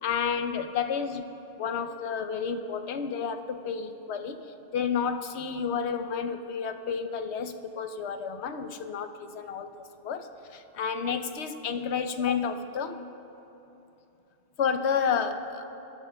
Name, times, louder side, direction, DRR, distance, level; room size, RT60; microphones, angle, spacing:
voice 1, 0.0-1.2 1.6-4.4 4.7-13.0 14.6-15.7, left 6 dB, 90° left, 8 dB, 1.0 m, -31 dB
23.5 x 13.5 x 2.2 m, 2.9 s
omnidirectional pair, 1.1 m